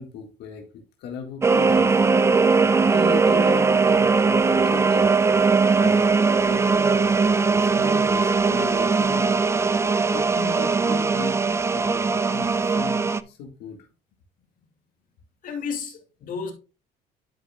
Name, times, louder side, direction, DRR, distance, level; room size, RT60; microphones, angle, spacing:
voice 1, 0.0-2.0 2.9-5.1 5.7-6.1 6.5-9.4 10.1-11.4 11.7-13.8, left 5 dB, 80° left, 1.9 m, -37 dB
sound 1, 1.4-13.2, right 4 dB, 15° right, 0.3 m, -20 dB
voice 2, 15.4-16.5, left 6 dB, 55° left, 2.4 m, -32 dB
11.5 x 5.3 x 2.4 m
cardioid pair, 110°, 17 cm